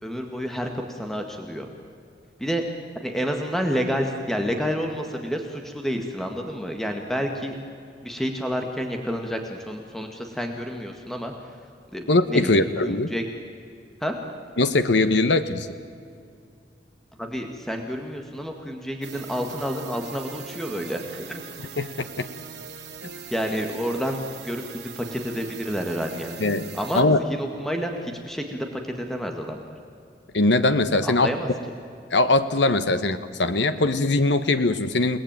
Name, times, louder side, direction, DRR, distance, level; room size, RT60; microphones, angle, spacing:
voice 1, 0.0-1.7 2.4-2.6 3.0-7.6 8.0-11.3 11.9-13.2 14.0-14.2 17.2-21.4 23.3-24.2 24.4-26.4 26.7-29.7 31.0-31.5 32.9-33.0, equal, ahead, 3 dB, 2.0 m, -29 dB
voice 2, 12.1-13.1 14.6-15.7 21.8-22.3 26.4-27.2 30.3-31.3 32.1-35.2, left 2 dB, 90° left, 10 dB, 1.2 m, -21 dB
sound 1, 19.0-27.0, right 6 dB, 75° right, 2.4 m, -41 dB
29.5 x 19.5 x 9.1 m, 2.4 s
head